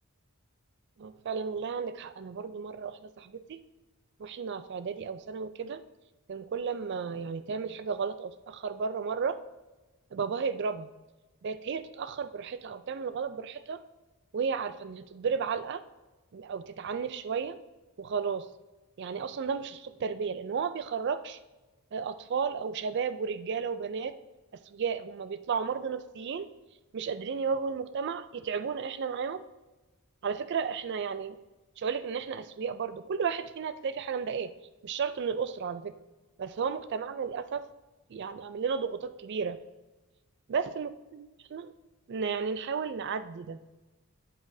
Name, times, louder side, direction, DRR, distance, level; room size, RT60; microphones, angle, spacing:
voice 1, 1.0-3.6 4.2-5.8 6.3-9.4 10.1-10.9 11.4-13.8 14.3-15.8 16.3-17.6 18.0-18.5 19.0-21.4 21.9-24.1 24.5-26.5 26.9-29.4 30.2-31.4 31.8-34.5 34.8-35.9 36.4-37.6 38.1-39.6 40.5-41.7 42.1-43.6, right 6 dB, 50° right, 13 dB, 0.4 m, -33 dB
8.6 x 7.9 x 2.7 m, 1.1 s
head